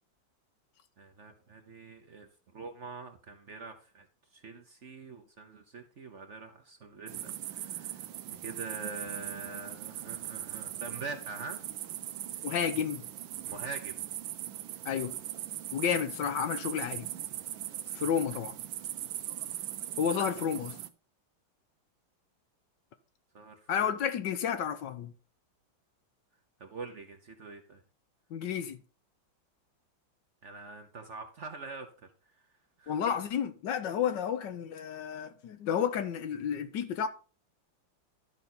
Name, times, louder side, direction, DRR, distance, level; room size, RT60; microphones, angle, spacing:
voice 1, 1.0-4.1 4.3-11.7 12.4-12.5 13.5-14.0 23.3-24.0 26.6-27.8 30.4-32.5 32.8-33.1, right 4 dB, 50° right, 1.0 m, -44 dB
sound 1, 7.1-20.9, right 12 dB, 85° right, 1.4 m, -40 dB
voice 2, 12.4-13.1 14.8-15.1 15.7-17.1 17.9-18.5 20.0-20.8 23.7-25.1 28.3-28.8 32.9-37.1, left 8 dB, 70° left, 1.4 m, -31 dB
12.0 x 5.2 x 4.3 m
omnidirectional pair, 2.1 m